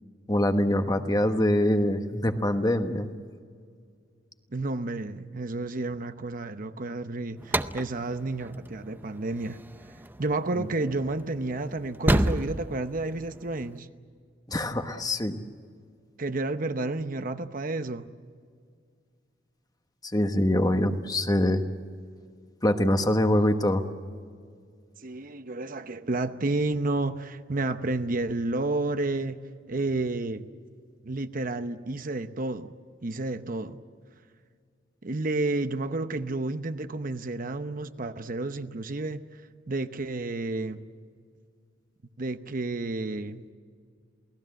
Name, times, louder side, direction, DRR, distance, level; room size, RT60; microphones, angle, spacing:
voice 1, 0.3-3.1 10.6-10.7 14.5-15.4 20.1-21.6 22.6-23.8, left 1 dB, 20° left, 7 dB, 1.2 m, -24 dB
voice 2, 4.5-9.6 10.2-13.9 16.2-18.1 25.0-29.4 29.7-30.5 31.0-32.7 33.0-33.8 35.0-39.3 39.7-40.8 42.2-43.4, right 2 dB, 50° right, 9 dB, 0.9 m, -31 dB
sound 1, 7.4-13.8, right 1 dB, 10° right, 0.6 m, -31 dB
28.0 x 18.0 x 7.7 m, 2.1 s
head